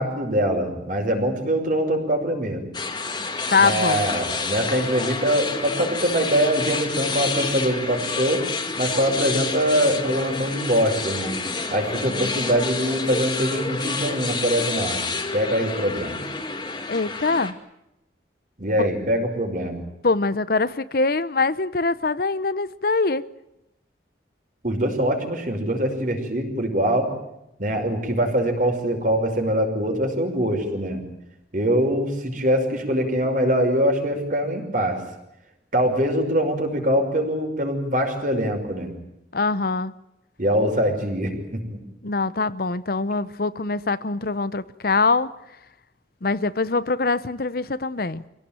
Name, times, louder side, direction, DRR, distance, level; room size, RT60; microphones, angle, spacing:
voice 1, 0.0-2.6 3.6-8.4 8.8-11.4 11.7-15.0 15.3-16.2 18.6-19.8 24.6-27.1 27.6-31.0 31.5-35.0 35.7-38.9 40.4-41.8, equal, 45° right, 5.6 m, -23 dB
sound 1, 2.7-17.5, left 4 dB, 25° left, 2.1 m, -29 dB
voice 2, 3.5-4.1 12.1-12.3 16.9-17.5 20.0-23.2 39.3-39.9 42.0-45.3 46.2-48.2, left 3 dB, 55° left, 0.8 m, -23 dB
26.0 x 17.5 x 9.0 m
head